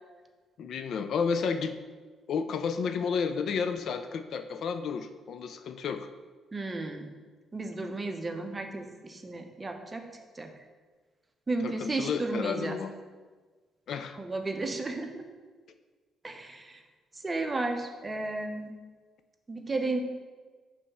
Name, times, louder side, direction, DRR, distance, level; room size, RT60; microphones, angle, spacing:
voice 1, 0.6-1.7 2.3-6.1 11.6-12.9 13.9-14.2, left 6 dB, 65° left, 8 dB, 0.4 m, -31 dB
voice 2, 6.5-7.1 7.5-10.1 10.4-10.5 11.5-12.8 14.1-15.3 16.2-16.8 17.2-18.7 19.5-20.0, right 2 dB, 25° right, 5 dB, 0.7 m, -33 dB
5.2 x 3.3 x 5.5 m, 1.4 s
cardioid pair, 90°, 0 cm